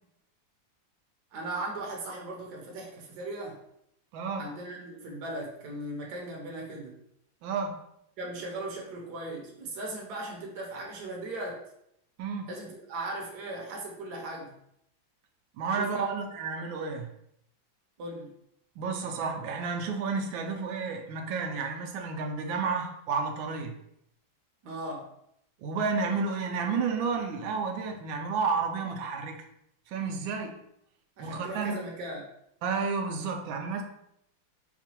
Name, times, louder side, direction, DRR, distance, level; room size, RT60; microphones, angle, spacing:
voice 1, 1.3-3.6 4.4-7.0 8.2-11.6 12.5-14.6 15.8-16.2 18.0-18.3 24.6-25.1 31.2-32.3, right 2 dB, 65° right, -1 dB, 1.1 m, -38 dB
voice 2, 4.1-4.5 7.4-7.8 12.2-12.5 15.6-17.1 18.8-23.7 25.6-29.4 29.9-30.6 31.2-31.8 32.6-33.8, right 5 dB, 85° right, 4 dB, 1.3 m, -31 dB
4.8 x 2.2 x 2.8 m, 0.75 s
omnidirectional pair, 2.1 m